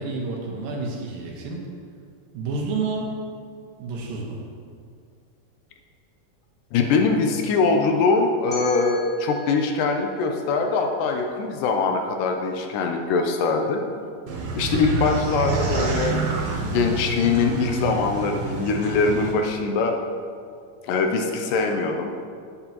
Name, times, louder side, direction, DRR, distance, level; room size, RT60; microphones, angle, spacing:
voice 1, 0.0-1.6 2.3-3.2 3.8-4.4, right 3 dB, 85° right, -1 dB, 2.9 m, -29 dB
voice 2, 6.7-13.8 14.6-16.2 16.6-20.0 20.9-22.1, left 4 dB, 80° left, 4 dB, 2.2 m, -22 dB
sound 1, 8.5-11.4, left 1 dB, 5° right, 1.4 m, -42 dB
sound 2, 14.3-19.3, right 3 dB, 65° right, 1.9 m, -27 dB
11.5 x 7.9 x 3.0 m, 2.2 s
omnidirectional pair, 4.1 m